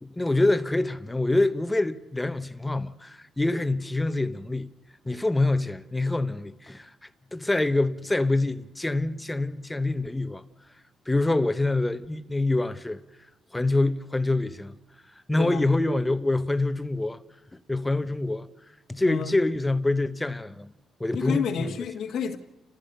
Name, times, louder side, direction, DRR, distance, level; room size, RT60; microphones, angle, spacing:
voice 1, 0.0-4.7 5.0-6.9 7.3-10.4 11.1-13.0 13.5-14.8 15.3-17.2 17.7-18.5 18.9-20.7 21.0-21.7, left 2 dB, 10° left, 1.0 m, -25 dB
voice 2, 15.4-15.7 19.0-19.3 21.1-22.4, left 7 dB, 70° left, 1.6 m, -29 dB
30.0 x 14.5 x 6.8 m
cardioid pair, 90°, 0 cm